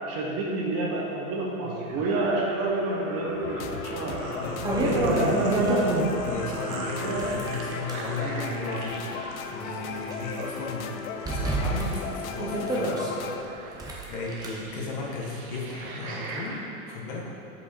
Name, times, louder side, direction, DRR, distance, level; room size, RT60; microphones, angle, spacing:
voice 1, 0.1-4.3 4.8-6.0 7.0-7.4 8.2-8.7, right 2 dB, 35° right, -2 dB, 1.0 m, -28 dB
sound 1, 1.6-16.6, right 3 dB, 75° right, 1.0 m, -41 dB
sound 2, 3.4-13.4, left 6 dB, 75° left, 0.6 m, -36 dB
sound 3, 3.7-3.8 4.3-6.4 7.0-8.1 8.7-10.1 10.5-10.6 11.2-13.1 13.7-14.5, right 2 dB, 10° right, 0.5 m, -30 dB
voice 2, 4.4-5.6 6.2-11.0 11.3-17.3, left 3 dB, 50° left, -3 dB, 1.4 m, -35 dB
5.2 x 4.9 x 4.3 m, 2.8 s
hypercardioid pair, 125°, 42 cm